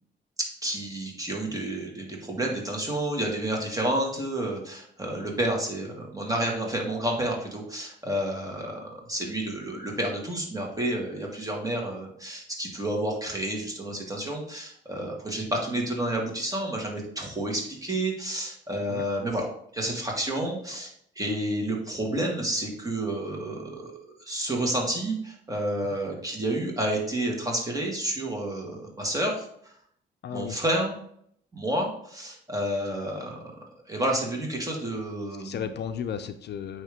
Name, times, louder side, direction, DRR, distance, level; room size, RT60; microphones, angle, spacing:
voice 1, 0.6-19.5 19.7-20.9 21.2-23.9 24.3-29.5 30.3-31.0 31.5-33.4 33.9-35.7, right 1 dB, 15° right, 0 dB, 1.9 m, -30 dB
voice 2, 30.2-30.6 34.9-35.0 35.4-36.8, left 8 dB, 60° left, 9 dB, 0.5 m, -34 dB
9.0 x 3.1 x 3.6 m, 0.68 s
cardioid pair, 90°, 20 cm